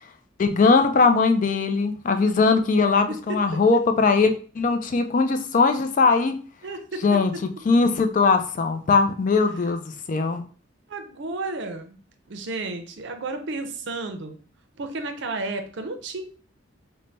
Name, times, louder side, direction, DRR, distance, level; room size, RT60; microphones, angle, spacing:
voice 1, 0.4-6.4 7.0-7.3 7.7-9.8 10.1-10.4, left 4 dB, 40° left, 7 dB, 0.4 m, -20 dB
voice 2, 3.1-3.4 6.6-7.2 10.9-12.0 12.3-14.4 14.8-16.2, right 3 dB, 65° right, 7 dB, 0.5 m, -32 dB
3.3 x 2.1 x 3.9 m, 0.41 s
head